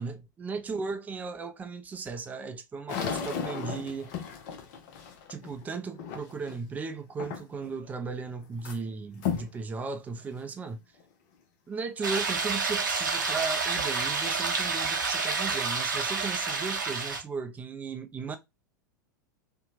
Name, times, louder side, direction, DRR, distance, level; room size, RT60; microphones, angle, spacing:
voice 1, 0.0-4.1 5.3-10.8 11.7-18.4, right 4 dB, 15° right, 0.4 m, -36 dB
sound 1, 2.9-6.7 7.2-7.7 8.1-8.8 9.2-9.6 10.2-10.3 11.0-11.1 13.6-13.7 14.2-14.8, left 7 dB, 45° left, 0.6 m, -35 dB
sound 2, 12.0-17.2, right 4 dB, 70° right, 0.6 m, -29 dB
2.7 x 2.1 x 2.6 m
figure-of-eight pair, 90°, 11 cm